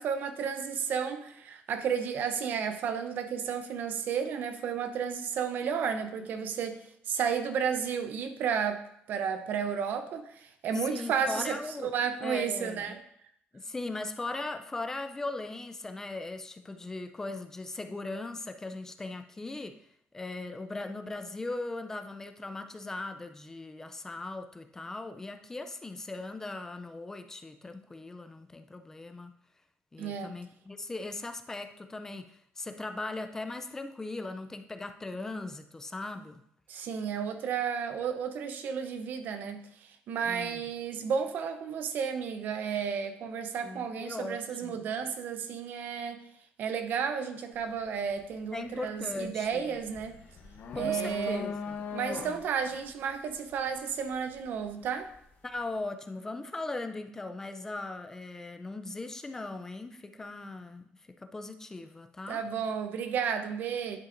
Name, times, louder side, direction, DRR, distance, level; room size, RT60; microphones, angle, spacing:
voice 1, 0.0-6.8 7.1-8.8 9.1-11.6 11.8-13.0 30.0-30.3 36.7-46.2 46.6-50.1 50.7-51.5 51.9-55.1 62.3-64.0, right 7 dB, 55° right, 8 dB, 0.7 m, -32 dB
voice 2, 10.7-11.9 12.2-12.9 13.5-19.8 20.1-29.3 29.9-36.4 40.2-40.6 43.6-44.9 48.5-49.8 50.7-51.8 52.2-52.4 55.4-60.8 61.2-62.4, left 2 dB, 15° left, 8 dB, 0.4 m, -39 dB
sound 1, 47.5-47.8 48.2-55.2, left 6 dB, 50° left, 0.9 m, -41 dB
10.5 x 5.6 x 2.6 m, 0.71 s
cardioid pair, 170°, 4 cm